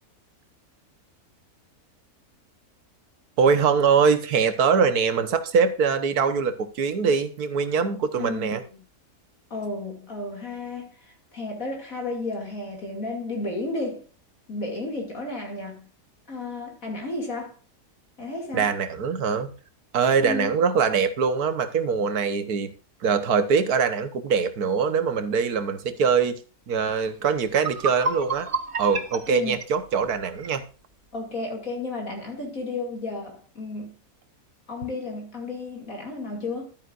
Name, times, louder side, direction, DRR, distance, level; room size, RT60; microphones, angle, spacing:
voice 1, 3.4-8.6 18.5-19.5 19.9-22.7 23.0-26.4 26.7-28.5 28.8-30.6, right 5 dB, 80° right, 1.7 m, -23 dB
voice 2, 8.2-8.8 9.5-14.0 14.5-15.9 16.3-17.5 18.2-18.7 20.2-20.6 29.3-29.6 31.1-33.9 34.7-36.7, left 2 dB, 60° left, 2.9 m, -33 dB
sound 1, 27.5-30.6, right 3 dB, 40° right, 1.1 m, -31 dB
13.0 x 9.3 x 2.5 m
omnidirectional pair, 1.6 m